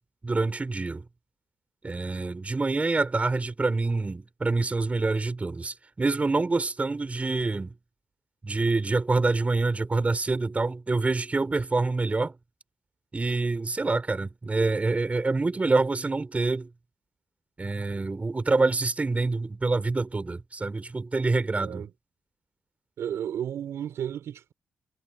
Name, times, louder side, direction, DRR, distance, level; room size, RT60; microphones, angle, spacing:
voice 1, 0.2-1.0 1.8-7.7 8.4-12.3 13.1-16.7 17.6-21.9, right 3 dB, 30° right, 5.1 m, -26 dB
voice 2, 21.6-21.9 23.0-24.5, right 9 dB, 85° right, 4.4 m, -33 dB
cardioid pair, 65°, 5 cm